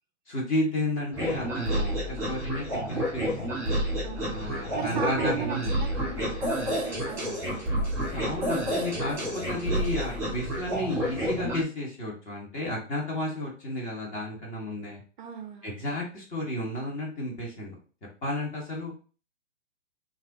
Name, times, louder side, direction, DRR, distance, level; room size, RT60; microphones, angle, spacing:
voice 1, 0.3-3.6 4.3-5.8 8.1-15.0 15.6-17.8 18.2-18.9, left 1 dB, 20° left, -2 dB, 1.7 m, -32 dB
sound 1, 1.1-11.6, equal, 5° right, 1.9 m, -30 dB
voice 2, 4.0-7.3 15.2-15.8, right 7 dB, 40° right, 5 dB, 0.6 m, -37 dB
5.7 x 2.8 x 3.0 m, 0.38 s
figure-of-eight pair, 125°, 39 cm